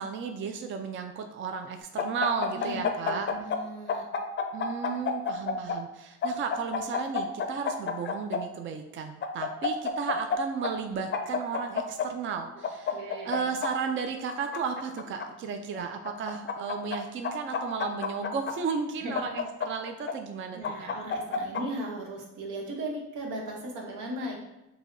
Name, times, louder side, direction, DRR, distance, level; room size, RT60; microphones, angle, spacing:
voice 1, 0.0-3.3 4.5-20.9, right 5 dB, 40° right, 6 dB, 0.4 m, -34 dB
sound 1, 2.0-3.6 3.9-5.8 6.2-8.4 9.2-10.4 10.6-10.7 11.1-12.1 12.6-13.7 14.3-15.3 16.0-17.0 17.2-18.5 19.1-20.1 20.6-21.6, left 6 dB, 40° left, 0.5 m, -29 dB
voice 2, 2.5-4.1 12.9-13.5 15.7-15.8 19.0-19.1 20.5-24.4, right 1 dB, 85° right, 0 dB, 1.0 m, -37 dB
4.7 x 2.8 x 2.6 m, 0.94 s
cardioid pair, 90°, 30 cm